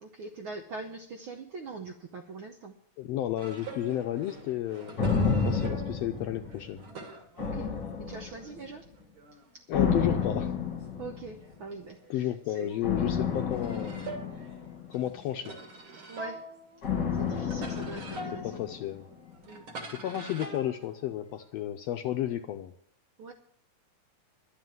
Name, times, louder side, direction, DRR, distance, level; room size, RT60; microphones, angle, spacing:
voice 1, 0.0-2.7 7.4-7.7 8.0-8.9 9.5-9.6 11.0-12.7 16.1-16.4 17.1-18.6 19.5-19.6 23.2-23.3, right 3 dB, 75° right, 5 dB, 1.2 m, -42 dB
voice 2, 3.0-6.8 9.7-10.5 12.1-14.1 14.9-15.5 18.4-19.1 19.9-22.7, left 12 dB, 75° left, 6 dB, 1.6 m, -32 dB
sound 1, 3.4-8.7 9.0-12.3 12.7-21.5, right 2 dB, 50° right, 2.2 m, -46 dB
sound 2, 5.0-6.9 7.4-8.6 9.7-11.4 12.8-15.2 16.8-19.0 19.3-19.4, left 6 dB, 40° left, 2.1 m, -30 dB
11.5 x 7.8 x 9.2 m, 0.69 s
omnidirectional pair, 3.3 m